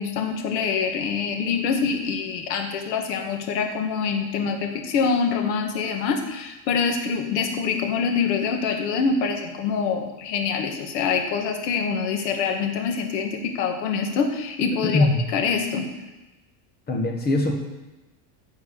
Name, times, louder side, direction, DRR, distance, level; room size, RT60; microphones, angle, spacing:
voice 1, 0.0-15.1 15.3-15.9, left 5 dB, 75° left, 4 dB, 1.9 m, -25 dB
voice 2, 14.8-15.3 16.9-17.5, left 2 dB, 20° left, 1 dB, 1.4 m, -21 dB
14.0 x 4.8 x 6.7 m, 1.1 s
cardioid pair, 175°, 50 cm